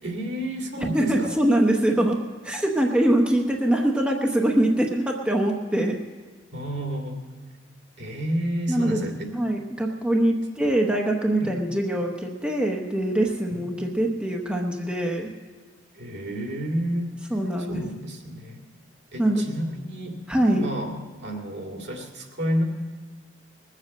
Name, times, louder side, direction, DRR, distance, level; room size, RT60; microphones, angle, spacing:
voice 1, 0.0-1.3 6.5-7.2 8.0-9.4 11.4-11.5 13.5-13.6 15.9-17.1 17.7-18.6 19.1-20.2 20.5-22.6, equal, 65° right, 1 dB, 2.2 m, -30 dB
voice 2, 0.8-6.0 8.7-9.1 9.3-15.3 17.3-17.8 19.2-19.5 20.3-20.7, right 1 dB, 5° right, 0 dB, 0.9 m, -23 dB
20.5 x 7.5 x 7.5 m, 1.4 s
head